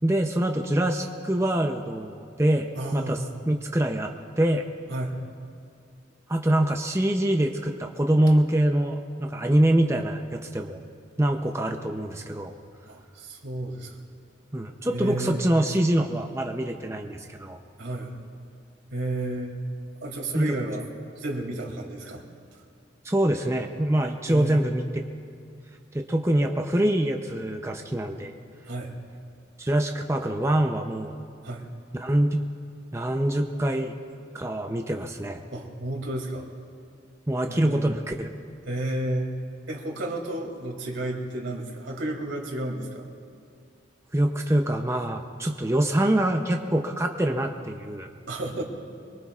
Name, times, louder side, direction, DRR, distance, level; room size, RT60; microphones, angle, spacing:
voice 1, 0.0-4.1 4.4-4.7 6.3-10.8 11.2-12.5 14.5-17.6 20.3-20.6 23.0-24.8 25.9-28.3 29.6-31.1 31.9-32.4 32.9-33.9 34.3-35.4 37.3-38.3 44.1-48.1, right 1 dB, 15° right, 3 dB, 0.6 m, -24 dB
voice 2, 2.7-3.3 4.9-5.1 12.9-13.9 14.9-15.5 17.8-18.2 18.9-19.6 20.0-20.9 21.2-22.3 24.3-24.7 28.7-28.9 31.4-31.7 35.5-36.5 37.5-37.9 38.6-39.4 39.7-43.1 47.9-48.0 48.3-48.6, right 1 dB, 85° right, 0 dB, 2.6 m, -32 dB
24.5 x 23.0 x 2.4 m, 2.3 s
head